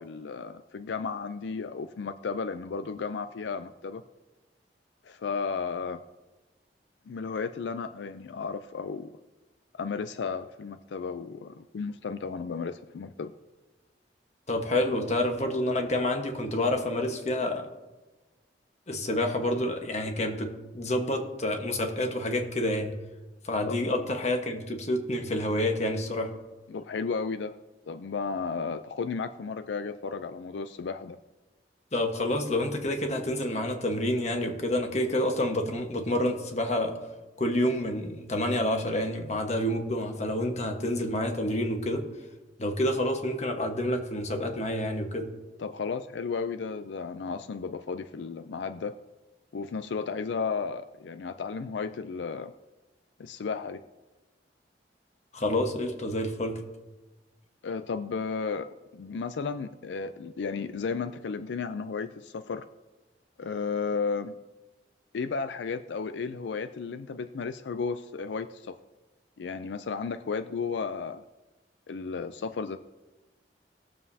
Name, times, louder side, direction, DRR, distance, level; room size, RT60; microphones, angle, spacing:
voice 1, 0.0-4.0 5.0-6.0 7.1-9.1 9.7-13.3 23.7-23.8 26.7-27.6 27.9-31.2 45.6-48.9 49.5-52.5 53.2-53.8 57.6-62.6 63.4-64.3 65.1-68.8 69.4-71.2 71.9-72.8, left 5 dB, 85° left, 11 dB, 0.4 m, -33 dB
voice 2, 14.5-17.6 18.9-20.5 20.7-22.9 23.4-26.3 31.9-36.9 37.4-42.0 42.6-45.3 55.3-56.5, left 1 dB, 40° left, 4 dB, 1.3 m, -28 dB
20.0 x 7.3 x 2.8 m, 1.2 s
head